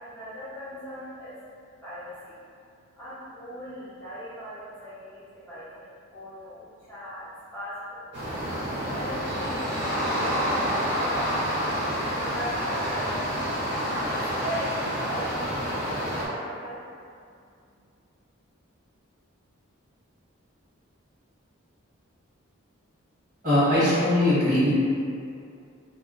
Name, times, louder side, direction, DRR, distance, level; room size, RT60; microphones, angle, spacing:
voice 1, 0.0-1.4 1.8-2.4 3.0-8.7 8.9-13.4 14.0-16.8, equal, 10° left, -13 dB, 0.5 m, -39 dB
sound 1, 8.1-16.3, equal, 55° right, 0.7 m, -28 dB
voice 2, 23.4-24.7, left 1 dB, 40° right, -12 dB, 1.4 m, -21 dB
2.8 x 2.0 x 3.6 m, 2.4 s
head